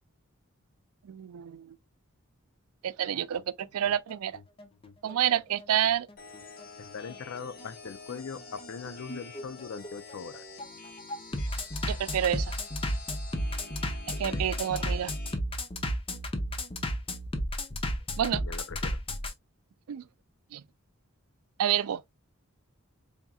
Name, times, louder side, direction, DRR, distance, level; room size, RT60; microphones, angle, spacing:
voice 1, 1.0-1.7 2.8-4.4 5.0-6.1 11.9-12.5 14.2-15.1 18.2-18.4 19.9-20.0 20.5-20.6 21.6-22.0, right 10 dB, 80° right, 0.4 m, -28 dB
Bass drum, 3.3-19.3, left 1 dB, 25° left, 0.6 m, -33 dB
sound 1, 6.2-15.4, left 3 dB, 45° left, 0.9 m, -47 dB
voice 2, 6.8-10.4 14.1-14.5 18.3-19.0, left 6 dB, 65° left, 0.4 m, -41 dB
4.1 x 3.6 x 2.3 m
head